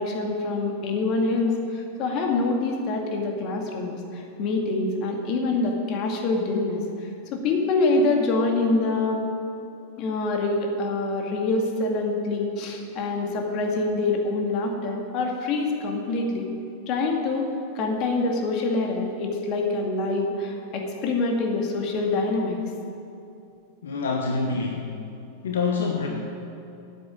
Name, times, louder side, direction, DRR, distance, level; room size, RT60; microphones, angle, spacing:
voice 1, 0.0-6.8 7.3-9.2 10.0-16.5 16.9-17.5 17.7-22.6, left 3 dB, 45° left, 1 dB, 2.2 m, -25 dB
voice 2, 23.8-25.0 25.4-26.1, left 4 dB, 70° left, 0 dB, 1.3 m, -26 dB
9.5 x 8.4 x 9.0 m, 2.7 s
figure-of-eight pair, 95°, 0 cm